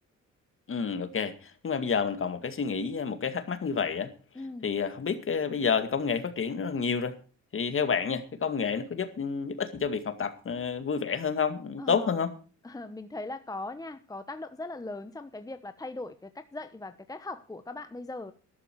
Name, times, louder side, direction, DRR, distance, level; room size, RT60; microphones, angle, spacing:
voice 1, 0.7-4.1 4.6-7.1 7.5-12.3, left 6 dB, 45° left, 10 dB, 2.2 m, -29 dB
voice 2, 4.3-4.7 11.8-12.2 12.6-18.3, left 2 dB, 10° left, 10 dB, 1.0 m, -39 dB
12.5 x 12.5 x 4.6 m, 0.39 s
cardioid pair, 90°, 30 cm